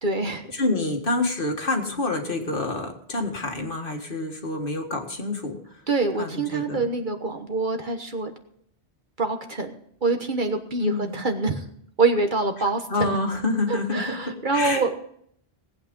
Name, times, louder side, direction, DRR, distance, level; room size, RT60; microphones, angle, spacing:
voice 1, 0.0-0.4 5.9-8.3 9.2-9.7 10.0-11.6 12.0-13.2 13.7-14.9, right 3 dB, 50° right, 5 dB, 1.5 m, -25 dB
voice 2, 0.5-5.8 6.2-6.9 10.8-11.2 12.9-14.9, left 2 dB, 55° left, 3 dB, 2.0 m, -27 dB
18.5 x 8.7 x 5.4 m, 0.67 s
omnidirectional pair, 1.1 m